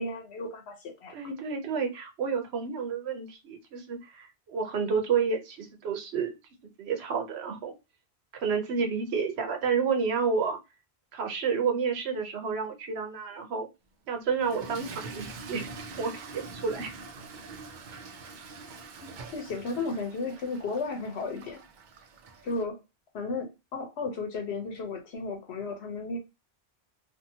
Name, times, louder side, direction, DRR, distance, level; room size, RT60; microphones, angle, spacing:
voice 1, 0.0-1.2 19.3-21.6 22.4-22.8 23.1-26.2, left 3 dB, 90° left, 1.0 m, -34 dB
voice 2, 1.1-6.3 6.8-7.7 8.3-10.6 11.1-13.7 14.1-15.7 16.0-16.9, right 5 dB, 80° right, 1.0 m, -30 dB
Toilet flush / Fill (with liquid), 14.3-22.6, right 3 dB, 55° right, 0.6 m, -44 dB
2.7 x 2.5 x 2.6 m
omnidirectional pair, 1.1 m